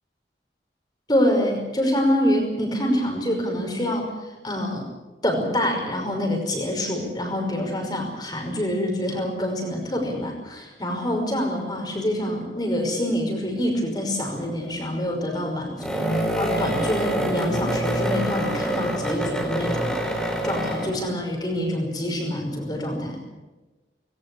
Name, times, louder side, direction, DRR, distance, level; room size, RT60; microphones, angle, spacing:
voice 1, 1.1-4.1 4.4-4.9 5.2-20.0 20.4-23.2, left 1 dB, 25° left, 2 dB, 5.6 m, -26 dB
sound 1, 14.4-14.7 15.8-21.1, right 1 dB, 5° left, 4.1 m, -26 dB
20.5 x 18.5 x 8.6 m, 1.1 s
head